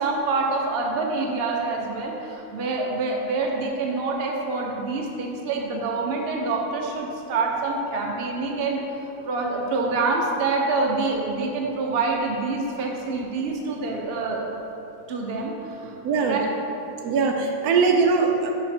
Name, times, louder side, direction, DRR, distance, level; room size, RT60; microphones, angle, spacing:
voice 1, 0.0-8.8 9.2-14.5 15.1-16.4, right 3 dB, 50° right, 0 dB, 0.9 m, -26 dB
voice 2, 16.0-16.4 17.0-18.5, right 4 dB, 90° right, 2 dB, 1.2 m, -21 dB
5.7 x 5.5 x 4.3 m, 2.8 s
omnidirectional pair, 1.6 m